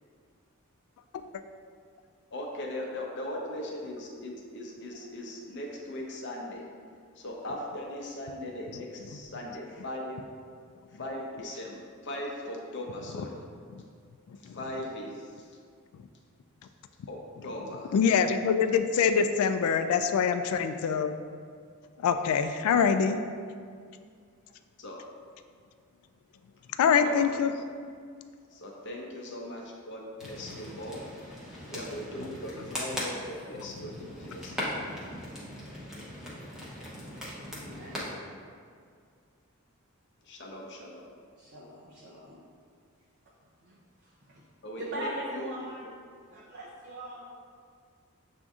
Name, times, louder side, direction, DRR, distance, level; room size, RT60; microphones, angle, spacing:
voice 1, 2.3-6.7 7.1-10.2 10.9-13.4 14.4-15.5 17.1-17.9 24.8-25.0 27.0-27.5 28.5-31.0 31.7-34.9 40.2-41.1 44.6-45.7, left 1 dB, 55° left, -1 dB, 0.7 m, -39 dB
voice 2, 17.9-21.1 22.0-23.2 26.8-27.5, left 6 dB, 85° left, 13 dB, 0.3 m, -24 dB
sound 1, 30.2-38.1, equal, 5° right, 0.8 m, -39 dB
voice 3, 37.5-38.2 41.4-42.4 43.6-43.8 44.3-44.4 44.8-45.8 46.3-47.3, right 1 dB, 50° right, -5 dB, 0.5 m, -41 dB
7.3 x 2.6 x 2.3 m, 2.2 s
head